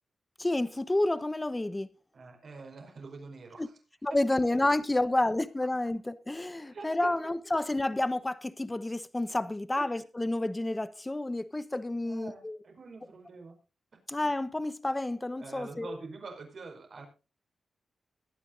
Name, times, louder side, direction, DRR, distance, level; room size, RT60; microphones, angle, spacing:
voice 1, 0.4-1.9 3.6-3.7 4.0-12.6 14.1-16.0, left 2 dB, 15° left, 1.0 m, -30 dB
voice 2, 2.1-3.7 4.1-4.2 6.6-7.1 9.7-10.0 12.0-13.6 13.9-14.0 15.4-17.1, right 4 dB, 60° right, 5.2 m, -45 dB
21.5 x 10.0 x 2.6 m
wide cardioid pair, 105°, 0 cm